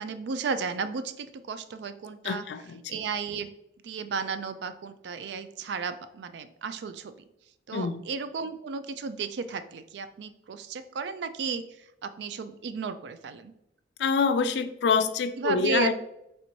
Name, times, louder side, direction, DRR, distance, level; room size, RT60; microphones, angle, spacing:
voice 1, 0.0-2.4 2.9-3.5 3.8-7.1 7.7-11.6 12.0-13.5 15.4-15.9, right 5 dB, 70° right, 11 dB, 0.3 m, -33 dB
voice 2, 2.2-3.0 7.7-8.0 14.0-15.9, left 5 dB, 70° left, 11 dB, 0.3 m, -26 dB
3.3 x 3.0 x 4.0 m, 0.82 s
head